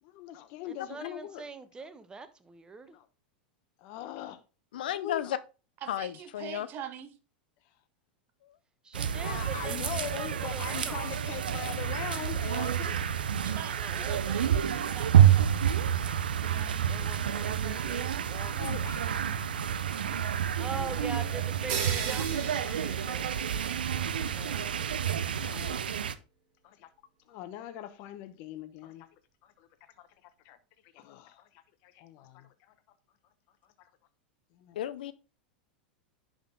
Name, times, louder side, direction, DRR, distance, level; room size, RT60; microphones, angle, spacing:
voice 1, 0.0-1.4 2.9-3.1 3.8-4.4 4.9-5.3 9.2-13.0 14.2-14.3 15.4-15.5 17.6-17.8 18.5-19.1 20.1-21.4 23.1-23.4 24.2-24.4 25.3-25.8 26.6-26.9 27.3-29.1 29.4-29.7 30.0-30.1 30.4-30.6 30.9-31.5 31.8-32.7 34.6-34.8, left 12 dB, 55° left, 0.9 m, -42 dB
voice 2, 0.7-3.0 8.8-11.1 13.5-14.4 16.9-18.9 20.6-23.4 24.3-24.6, right 4 dB, 15° right, 1.0 m, -43 dB
voice 3, 4.7-5.4 5.9-6.7 8.4-8.5 34.7-35.1, left 11 dB, 75° left, 0.6 m, -33 dB
voice 4, 5.8-7.1 13.4-15.5 16.3-17.4 22.0-22.3, right 9 dB, 45° right, 1.1 m, -43 dB
sound 1, 8.9-26.1, right 9 dB, 85° right, 0.6 m, -28 dB
sound 2, 21.7-23.8, right 7 dB, 60° right, 1.5 m, -37 dB
10.5 x 3.9 x 3.8 m
hypercardioid pair, 100°, 5 cm